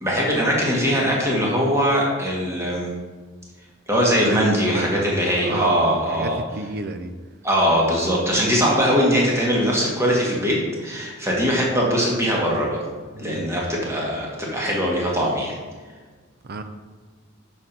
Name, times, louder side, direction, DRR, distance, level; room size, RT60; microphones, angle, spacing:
voice 1, 0.0-2.9 3.9-6.3 7.4-12.8 13.2-15.6, equal, 15° right, -3 dB, 1.5 m, -21 dB
voice 2, 4.2-7.1 13.1-13.6 16.4-16.6, right 2 dB, 50° right, 9 dB, 0.5 m, -31 dB
6.3 x 4.4 x 5.2 m, 1.4 s
head